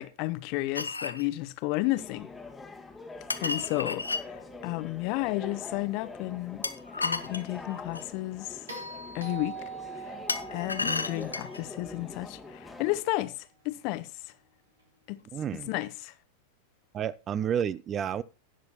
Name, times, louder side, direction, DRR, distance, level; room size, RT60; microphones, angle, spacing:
voice 1, 0.0-2.3 3.4-6.7 7.0-8.6 9.1-9.6 9.9-10.2 10.5-14.1 15.1-15.2 15.6-16.1, left 18 dB, 45° left, 0.8 m, -32 dB
sound 1, 0.7-1.3 3.3-4.2 6.6-8.1 10.3-11.6, left 3 dB, 80° left, 0.7 m, -33 dB
sound 2, 1.9-13.0, left 3 dB, 10° left, 1.4 m, -44 dB
sound 3, 8.7-12.9 15.2-15.3, right 4 dB, 75° right, 3.0 m, -43 dB
voice 2, 15.3-15.7 16.9-18.2, right 8 dB, 25° right, 0.4 m, -30 dB
17.5 x 6.6 x 2.9 m
figure-of-eight pair, 90°, 0 cm